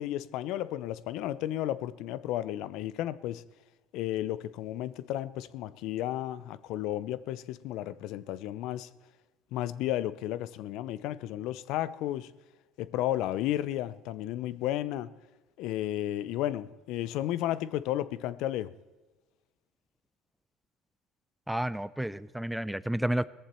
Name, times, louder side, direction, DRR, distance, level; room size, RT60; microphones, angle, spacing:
voice 1, 0.0-3.4 3.9-8.9 9.5-12.3 12.8-15.1 15.6-18.7, left 13 dB, 75° left, 0.5 m, -33 dB
voice 2, 21.5-23.3, right 1 dB, 5° right, 0.5 m, -31 dB
18.0 x 14.5 x 4.3 m
supercardioid pair, 95°, 0 cm